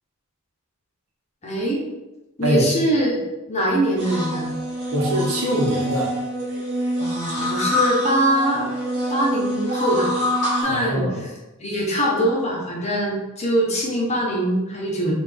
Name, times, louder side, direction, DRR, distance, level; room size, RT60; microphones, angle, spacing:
voice 1, 1.4-1.8 2.4-3.2 3.5-4.5 7.0-8.7 9.1-10.1 10.6-11.3 11.6-15.1, right 1 dB, 30° left, -3 dB, 0.8 m, -23 dB
sound 1, 4.0-10.6, equal, 50° right, 1.2 m, -25 dB
voice 2, 4.9-6.1 10.7-11.2, equal, 75° right, -2 dB, 0.9 m, -22 dB
3.8 x 2.5 x 3.4 m, 1.0 s
head